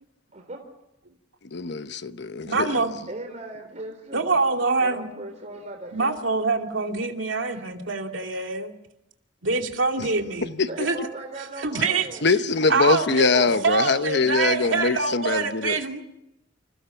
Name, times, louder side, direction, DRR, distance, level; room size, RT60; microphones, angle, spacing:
voice 1, 0.3-0.6 3.1-4.4 4.7-6.2 7.5-7.6 10.7-12.3, right 2 dB, 40° right, 3.8 m, -38 dB
voice 2, 1.5-2.8 10.6-10.7 12.2-15.8, left 4 dB, 60° left, 1.0 m, -23 dB
voice 3, 2.5-3.0 4.1-5.1 5.9-8.7 9.4-11.0 11.4-12.2 12.7-16.0, right 4 dB, 80° right, 2.5 m, -25 dB
29.5 x 27.0 x 5.8 m
head